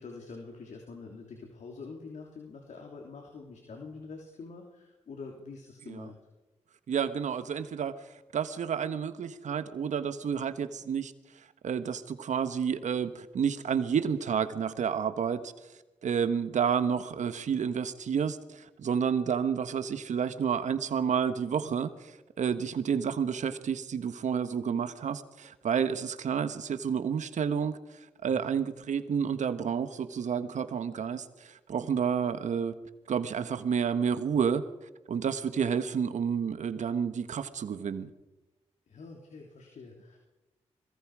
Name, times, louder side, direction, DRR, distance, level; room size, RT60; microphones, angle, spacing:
voice 1, 0.0-6.2 28.3-28.5 38.9-40.2, left 4 dB, 70° left, 1 dB, 3.4 m, -45 dB
voice 2, 6.9-8.0 8.3-11.1 11.6-32.7 33.1-34.6 35.1-38.1, right 7 dB, 70° right, 11 dB, 1.5 m, -30 dB
26.5 x 21.5 x 4.9 m, 1.1 s
cardioid pair, 50°, 13 cm